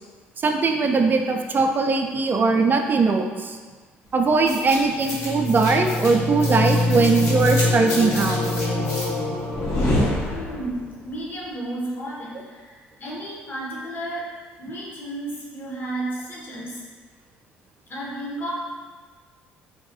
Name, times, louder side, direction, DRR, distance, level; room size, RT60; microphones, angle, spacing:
voice 1, 0.4-3.6 4.1-8.4, right 4 dB, 40° right, 4 dB, 0.4 m, -20 dB
sound 1, 4.5-10.8, left 1 dB, 60° left, 1.1 m, -24 dB
voice 2, 10.3-14.3 14.6-16.8 17.9-18.5, right 1 dB, 40° left, -5 dB, 1.2 m, -32 dB
4.0 x 2.6 x 2.6 m, 1.4 s
hypercardioid pair, 65°, 5 cm